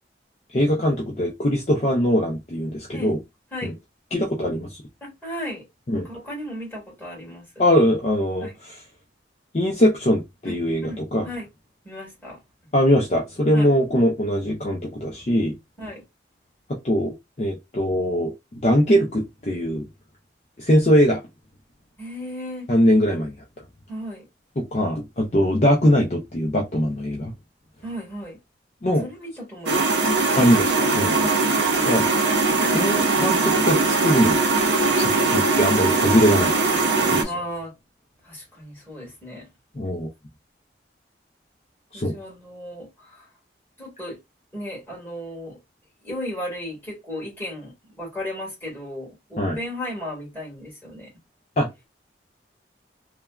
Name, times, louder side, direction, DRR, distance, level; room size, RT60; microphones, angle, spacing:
voice 1, 0.5-3.2 3.6-3.7 4.1-4.8 5.9-6.1 7.6-8.7 9.5-11.3 12.7-15.5 16.8-18.3 18.6-19.9 20.6-21.2 22.7-23.3 24.6-27.3 28.8-29.0 30.4-31.2 31.9-32.0 32.7-34.4 35.0-36.5 37.1-37.3 39.8-40.1 41.9-42.2 49.4-49.6 51.6-51.9, equal, 35° left, 0.5 m, -21 dB
voice 2, 5.0-5.6 5.9-7.6 8.4-8.5 10.5-10.6 10.8-11.5 11.8-12.4 13.5-13.8 15.8-16.0 22.0-22.7 23.9-24.3 27.8-28.4 28.9-30.4 31.2-31.4 37.2-37.7 38.2-39.5 41.9-43.3 43.8-44.2 44.5-45.6 46.0-51.1, equal, 10° left, 1.8 m, -35 dB
sound 1, 29.7-37.2, right 3 dB, 70° right, 0.6 m, -20 dB
3.2 x 2.2 x 2.3 m
head